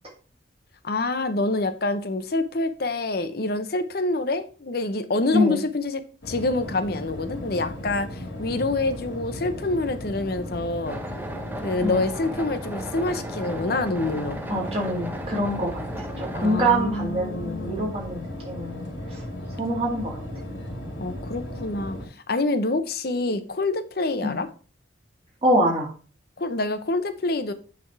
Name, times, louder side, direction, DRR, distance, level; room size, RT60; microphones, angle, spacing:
voice 1, 0.8-11.0 11.6-14.4 16.3-18.0 21.0-22.0 22.3-24.5 26.4-27.5, left 2 dB, 50° left, 10 dB, 0.7 m, -26 dB
sound 1, 6.2-22.1, left 1 dB, 85° left, 2.1 m, -36 dB
sound 2, 10.9-16.7, right 1 dB, 10° right, 0.7 m, -37 dB
voice 2, 14.5-19.2 19.6-20.2 24.2-24.4 25.4-25.9, right 1 dB, 30° right, -2 dB, 2.0 m, -25 dB
8.6 x 3.5 x 4.6 m, 0.40 s
head